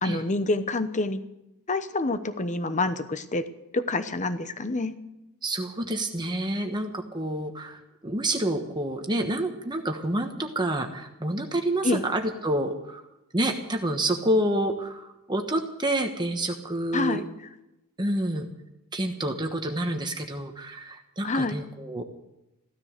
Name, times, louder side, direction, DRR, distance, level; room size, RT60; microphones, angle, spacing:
voice 1, 0.0-1.2 1.7-3.4 3.7-4.9 11.8-12.0 16.9-17.2 21.2-21.6, left 2 dB, 35° left, 12 dB, 0.9 m, -27 dB
voice 2, 5.4-13.0 13.3-17.2 18.0-18.5 18.9-22.0, right 1 dB, 20° right, 4 dB, 1.2 m, -28 dB
15.5 x 13.5 x 6.6 m, 0.94 s
head